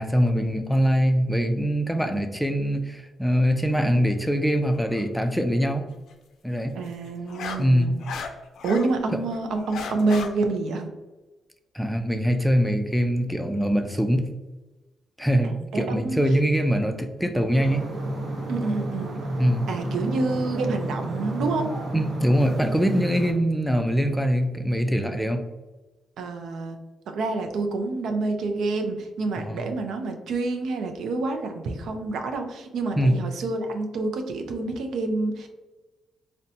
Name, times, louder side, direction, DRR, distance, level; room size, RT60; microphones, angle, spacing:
voice 1, 0.0-5.9 6.4-6.8 7.6-8.0 11.7-14.3 15.2-17.8 19.4-19.7 21.9-25.5 29.4-29.7 33.0-33.2, equal, ahead, 6 dB, 0.4 m, -23 dB
sound 1, 4.7-5.0 6.8-8.9 9.3-10.3, left 5 dB, 80° left, 0.4 m, -35 dB
voice 2, 6.7-8.0 8.6-10.9 15.4-16.2 18.5-19.2 19.7-21.7 26.2-26.8 27.1-35.5, right 3 dB, 80° right, 5 dB, 0.4 m, -28 dB
sound 2, 17.5-23.3, right 1 dB, 50° right, 0.8 m, -31 dB
4.0 x 2.1 x 2.6 m, 1.1 s
cardioid pair, 75°, 0 cm